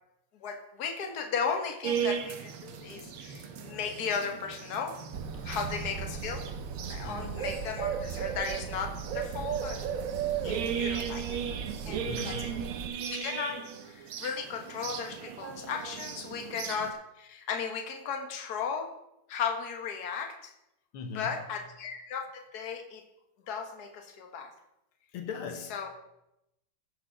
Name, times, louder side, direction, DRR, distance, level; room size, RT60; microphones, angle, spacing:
voice 1, 0.4-5.0 5.4-6.4 6.9-9.9 10.4-11.4 11.8-12.5 13.1-18.9 19.3-20.5 21.1-23.0 23.5-24.5 25.7-25.9, left 6 dB, 50° left, 4 dB, 1.7 m, -36 dB
sound 1, 1.8-16.9, right 7 dB, 80° right, 1.8 m, -38 dB
Bird, 5.1-12.9, right 7 dB, 60° right, 0.9 m, -36 dB
voice 2, 7.0-7.5 12.0-12.7 20.9-21.5 25.1-25.9, left 5 dB, 75° left, 5 dB, 1.9 m, -40 dB
13.5 x 6.6 x 5.1 m, 0.85 s
omnidirectional pair, 2.4 m